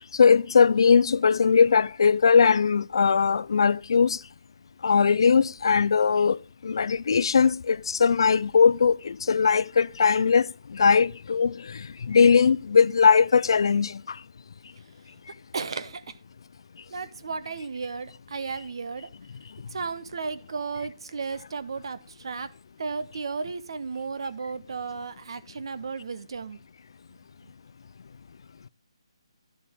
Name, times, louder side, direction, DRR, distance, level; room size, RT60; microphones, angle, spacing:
voice 1, 0.1-4.2 4.8-14.2, left 6 dB, 55° left, 0.4 m, -20 dB
voice 2, 15.5-16.1 16.9-19.1 19.7-22.5 22.8-26.6, right 4 dB, 55° right, 0.9 m, -34 dB
12.0 x 7.5 x 3.5 m
hypercardioid pair, 170°, 3 cm